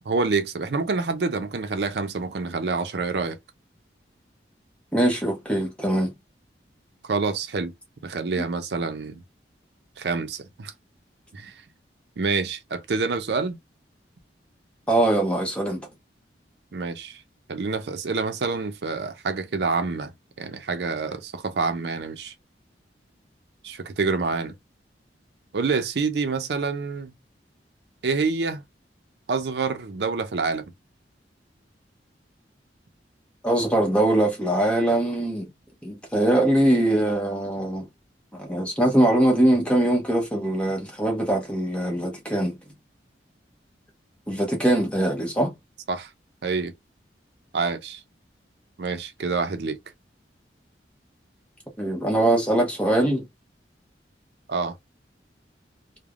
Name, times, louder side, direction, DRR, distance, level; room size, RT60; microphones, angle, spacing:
voice 1, 0.1-3.4 7.0-7.7 8.0-9.2 10.0-10.7 11.3-11.5 12.2-13.6 16.7-17.2 17.5-20.1 20.4-22.3 23.6-24.6 25.5-27.1 28.0-28.6 29.3-30.6 45.9-46.1 46.4-46.7 47.5-48.0 48.8-49.8 54.5-54.7, right 4 dB, 70° right, 0.5 m, -27 dB
voice 2, 4.9-6.1 14.9-15.8 33.4-35.5 35.8-37.9 38.3-42.6 44.3-45.5 51.8-53.3, right 1 dB, 5° left, 0.8 m, -22 dB
3.2 x 2.1 x 2.4 m
head